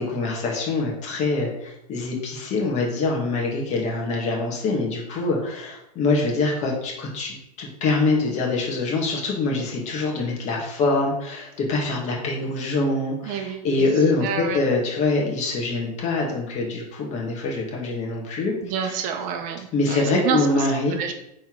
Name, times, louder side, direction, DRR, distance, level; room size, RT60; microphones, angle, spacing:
voice 1, 0.0-18.5 18.8-19.0 19.7-21.0, left 3 dB, 40° left, -1 dB, 2.0 m, -24 dB
voice 2, 13.3-13.9 14.2-14.6 18.6-20.6 21.0-21.1, right 7 dB, 45° right, 5 dB, 0.9 m, -28 dB
5.9 x 4.3 x 4.7 m, 0.82 s
supercardioid pair, 130°, 19 cm